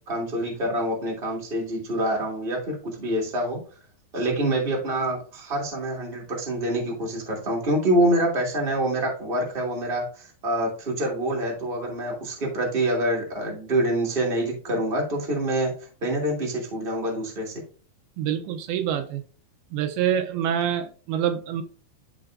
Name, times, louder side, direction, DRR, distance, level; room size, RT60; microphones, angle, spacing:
voice 1, 0.1-3.6 4.1-15.7 16.0-17.6, right 1 dB, 25° right, 1.3 m, -26 dB
voice 2, 18.2-19.2 19.7-21.6, right 9 dB, 85° right, 2.6 m, -26 dB
12.5 x 4.3 x 2.6 m
omnidirectional pair, 4.4 m